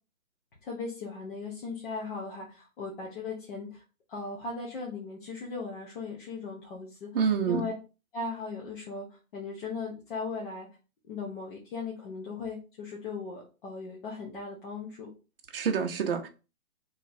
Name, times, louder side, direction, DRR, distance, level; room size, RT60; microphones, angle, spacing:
voice 1, 0.6-3.8 4.1-7.1 7.5-7.7 8.1-10.7 11.1-15.1, left 4 dB, 35° left, 1.0 m, -38 dB
voice 2, 7.1-7.7 15.5-16.3, right 6 dB, 40° right, 0.7 m, -27 dB
3.2 x 2.9 x 4.0 m
hypercardioid pair, 150°, 43 cm